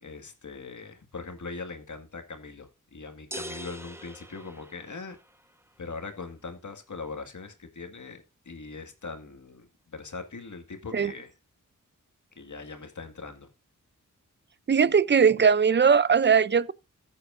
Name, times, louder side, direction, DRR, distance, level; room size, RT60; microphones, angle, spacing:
voice 1, 0.0-5.2 5.8-11.3 12.4-13.5, left 4 dB, 65° left, 2.1 m, -41 dB
sound 1, 3.3-5.3, right 1 dB, 10° right, 1.2 m, -42 dB
voice 2, 14.7-16.7, right 6 dB, 35° right, 0.5 m, -20 dB
15.5 x 8.4 x 2.6 m
wide cardioid pair, 60°, 32 cm